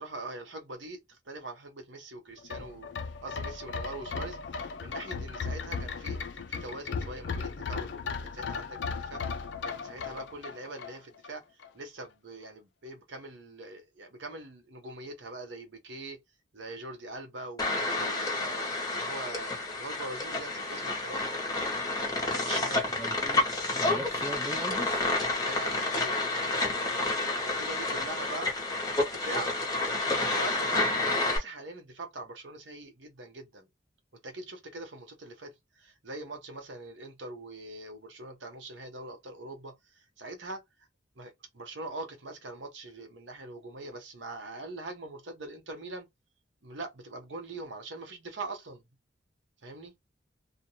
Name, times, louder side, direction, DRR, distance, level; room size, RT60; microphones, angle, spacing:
voice 1, 0.0-2.9 3.2-11.4 11.7-16.2 16.5-21.4 22.2-22.9 25.4-26.2 26.8-28.5 29.0-29.5 30.0-33.7 34.2-40.6 41.2-46.1 46.6-48.8 49.6-49.9, right 2 dB, 75° right, 0.8 m, -42 dB
sound 1, 2.4-11.3 11.6-11.7, left 5 dB, 70° left, 0.5 m, -36 dB
sound 2, 17.6-31.4, left 2 dB, 20° left, 0.8 m, -30 dB
voice 2, 22.9-25.1, right 1 dB, 15° right, 0.4 m, -40 dB
2.5 x 2.2 x 2.9 m
head